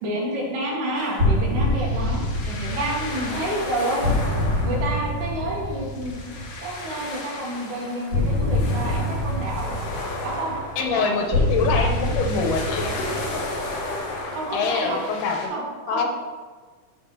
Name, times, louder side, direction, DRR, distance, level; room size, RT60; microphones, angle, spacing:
voice 1, 0.0-4.1 4.6-6.1 6.6-9.8 10.2-11.4 11.7-11.9 14.3-15.0 15.5-16.1, right 1 dB, 85° right, -3 dB, 3.2 m, -29 dB
sound 1, 1.0-15.5, left 2 dB, 60° left, 1.9 m, -35 dB
sound 2, 1.2-6.9 8.1-14.4, left 1 dB, 30° right, 2.1 m, -26 dB
voice 2, 10.8-13.4 14.5-16.1, left 5 dB, 90° left, 3 dB, 2.4 m, -25 dB
9.2 x 6.8 x 2.8 m, 1.4 s
omnidirectional pair, 3.8 m